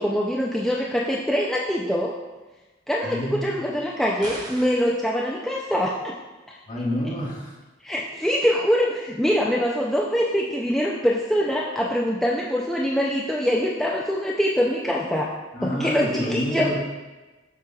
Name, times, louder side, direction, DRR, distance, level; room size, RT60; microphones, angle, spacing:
voice 1, 0.0-2.1 2.9-6.1 7.8-15.3 15.6-16.7, equal, ahead, -4 dB, 0.4 m, -24 dB
voice 2, 3.0-3.5 6.7-7.5 15.5-16.8, equal, 40° left, -5 dB, 1.6 m, -28 dB
sound 1, 4.2-4.9, right 1 dB, 20° right, 0.7 m, -37 dB
7.4 x 6.0 x 2.3 m, 1.2 s
head